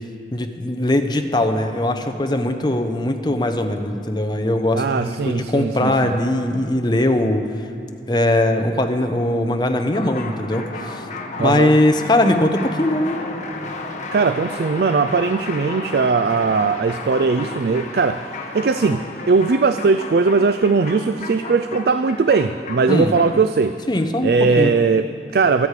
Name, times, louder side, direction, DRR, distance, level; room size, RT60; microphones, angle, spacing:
voice 1, 0.3-7.5 8.1-11.0 11.4-13.2 22.9-23.1 23.9-24.7, left 1 dB, 25° left, 6 dB, 0.8 m, -20 dB
voice 2, 4.7-6.1 11.4-11.7 14.1-23.9 24.2-25.7, right 4 dB, 60° right, 11 dB, 0.4 m, -19 dB
sound 1, 9.9-23.5, left 2 dB, 40° left, 1.3 m, -33 dB
24.0 x 8.3 x 4.9 m, 2.5 s
head